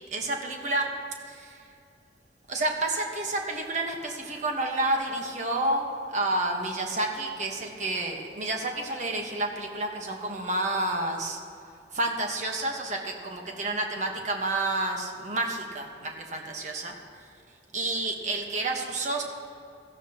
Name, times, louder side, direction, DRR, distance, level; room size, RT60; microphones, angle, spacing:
voice 1, 0.1-0.9 1.3-1.6 2.5-11.4 11.9-16.9 17.7-19.2, right 2 dB, 40° right, 2 dB, 1.4 m, -30 dB
17.0 x 13.5 x 3.0 m, 2.5 s
head